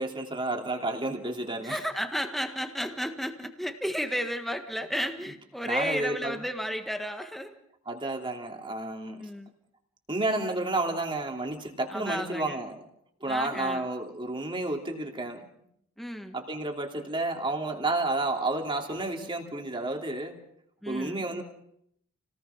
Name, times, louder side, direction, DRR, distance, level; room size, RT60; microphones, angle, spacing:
voice 1, 0.0-1.8 5.6-6.4 7.9-9.3 10.1-12.9 13.2-15.4 16.3-20.4 20.9-21.4, right 2 dB, 25° right, 2 dB, 3.1 m, -31 dB
voice 2, 1.6-7.6 9.2-9.5 11.9-12.7 13.3-13.9 16.0-16.4 20.8-21.3, equal, ahead, 6 dB, 1.6 m, -33 dB
30.0 x 19.0 x 5.9 m, 0.72 s
head